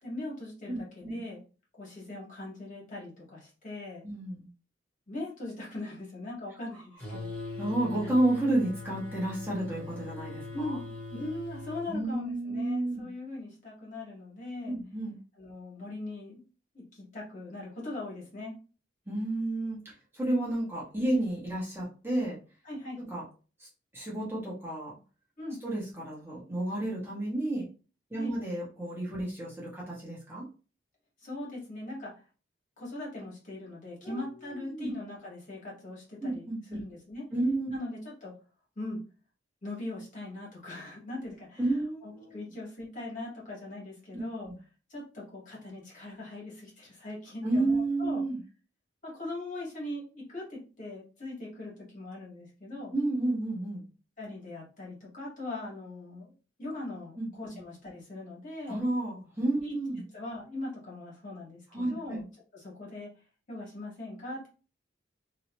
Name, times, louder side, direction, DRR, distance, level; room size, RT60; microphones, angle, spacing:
voice 1, 0.0-1.4 1.8-4.0 5.1-7.3 10.5-10.8 11.1-14.7 15.4-16.4 16.7-18.5 22.6-23.0 25.4-25.6 28.1-28.3 31.2-32.1 32.8-37.2 37.7-38.3 38.7-39.0 39.6-41.7 42.0-44.5 44.9-48.2 49.0-52.9 54.2-56.3 56.6-58.8 59.6-59.7 60.1-62.3 62.5-63.1 63.5-64.5, left 2 dB, 45° left, -5 dB, 1.7 m, -40 dB
voice 2, 4.0-4.5 7.6-10.8 11.9-13.1 14.6-15.2 19.1-22.4 23.1-23.2 23.6-23.7 23.9-24.9 25.6-27.7 28.1-30.5 34.0-34.9 36.2-36.8 37.3-37.7 41.6-42.4 44.5-44.6 47.4-48.4 52.9-53.8 57.2-57.3 58.7-60.0 61.7-62.2, right 1 dB, 15° right, -6 dB, 1.3 m, -31 dB
sound 1, 7.0-11.9, left 3 dB, 10° left, 1.7 m, -41 dB
3.0 x 3.0 x 3.0 m, 0.34 s
head